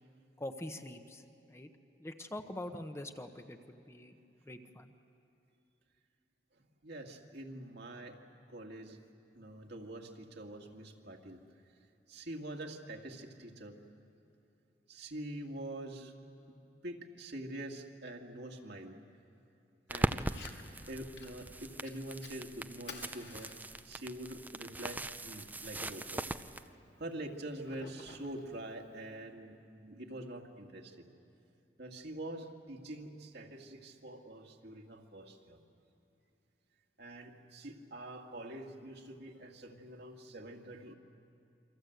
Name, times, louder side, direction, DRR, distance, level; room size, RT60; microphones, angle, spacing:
voice 1, 0.4-1.2 1.5-1.7 2.0-4.1 4.5-4.9, left 1 dB, 15° left, 6 dB, 1.0 m, -44 dB
voice 2, 6.6-8.2 8.5-9.0 9.3-11.4 12.1-13.8 14.9-16.1 16.5-16.6 16.8-19.0 19.9-20.2 20.9-23.5 23.8-26.3 27.0-29.6 29.8-31.1 31.8-35.6 37.0-40.9, right 1 dB, 65° right, 1 dB, 2.2 m, -45 dB
sound 1, 19.9-26.6, right 1 dB, 10° right, 0.6 m, -40 dB
Fire, 20.2-29.2, left 4 dB, 70° left, 2.4 m, -56 dB
28.0 x 25.0 x 8.1 m, 2.7 s
head